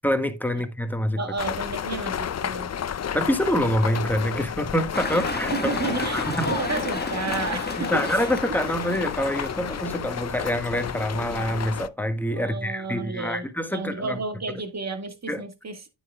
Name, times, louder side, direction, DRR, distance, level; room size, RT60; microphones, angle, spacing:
voice 1, 0.0-1.2 3.1-5.7 6.1-6.5 7.8-14.2 15.3-15.4, equal, 5° left, 1.5 m, -26 dB
voice 2, 1.2-2.7 5.6-8.2 12.3-15.9, right 3 dB, 35° right, 1.9 m, -32 dB
sound 1, 1.4-11.9, left 8 dB, 35° left, 0.6 m, -32 dB
sound 2, 4.9-10.0, left 2 dB, 20° left, 1.7 m, -32 dB
9.6 x 7.9 x 2.3 m
cardioid pair, 55°, 45 cm